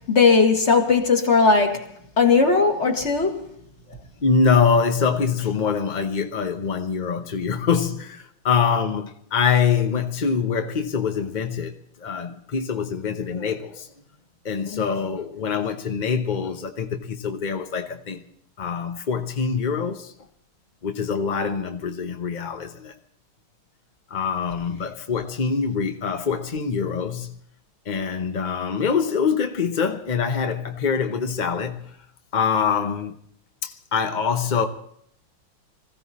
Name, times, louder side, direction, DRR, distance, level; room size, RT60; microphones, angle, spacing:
voice 1, 0.1-1.8 2.2-3.4, left 4 dB, 35° left, 1.9 m, -18 dB
voice 2, 3.9-13.9 14.4-18.2 18.6-20.1 20.8-22.9 24.1-27.4 27.9-32.0 32.3-33.2 33.6-34.6, left 6 dB, 55° left, 0.5 m, -24 dB
21.0 x 15.0 x 4.2 m
omnidirectional pair, 2.3 m